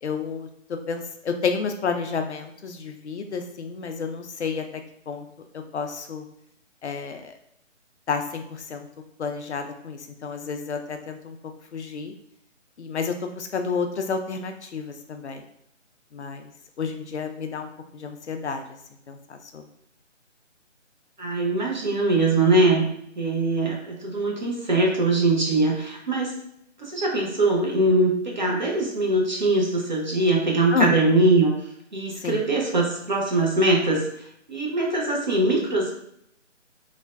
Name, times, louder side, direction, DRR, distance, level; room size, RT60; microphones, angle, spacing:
voice 1, 0.0-5.3 5.5-6.3 6.8-7.3 8.1-8.9 9.2-11.4 11.7-12.1 12.8-15.4 16.1-16.5 16.8-18.8 19.1-19.6 30.7-30.9 32.2-32.4, left 5 dB, 65° left, 6 dB, 0.5 m, -30 dB
voice 2, 21.2-22.9 23.2-26.4 26.8-31.6 31.9-34.1 34.5-35.9, right 2 dB, 40° right, -1 dB, 0.6 m, -22 dB
3.2 x 2.1 x 2.3 m, 0.72 s
figure-of-eight pair, 155°, 37 cm